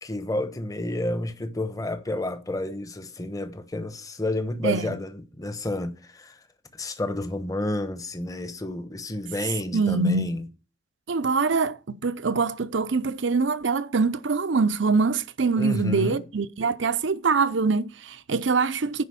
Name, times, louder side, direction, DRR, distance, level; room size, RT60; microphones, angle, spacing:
voice 1, 0.0-6.4 6.7-10.5 15.6-16.2, left 1 dB, 20° left, 0.9 m, -30 dB
voice 2, 9.7-10.3 11.1-19.0, right 4 dB, 75° right, 0.7 m, -24 dB
10.0 x 5.1 x 6.9 m
head